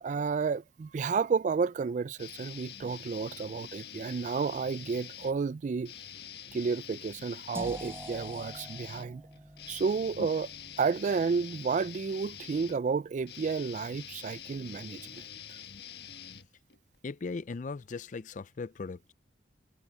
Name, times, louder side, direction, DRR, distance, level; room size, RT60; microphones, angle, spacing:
voice 1, 0.0-5.9 6.5-9.2 9.7-10.5 10.8-15.2, right 5 dB, 45° right, 0.3 m, -31 dB
sound 1, 2.2-5.4 5.8-17.0, left 9 dB, 60° left, 1.6 m, -46 dB
sound 2, 7.5-13.5, right 1 dB, 15° right, 3.8 m, -47 dB
voice 2, 17.0-19.1, left 4 dB, 45° left, 0.4 m, -38 dB
head